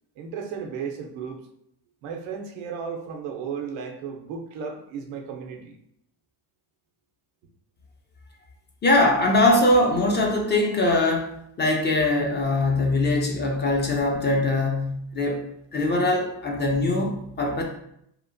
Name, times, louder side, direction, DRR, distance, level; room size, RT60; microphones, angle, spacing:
voice 1, 0.2-1.5 2.0-5.8, right 6 dB, 85° right, 3 dB, 0.6 m, -34 dB
voice 2, 8.8-15.4 15.7-17.6, left 2 dB, 25° left, 1 dB, 0.3 m, -22 dB
2.9 x 2.0 x 2.5 m, 0.73 s
cardioid pair, 105°, 44 cm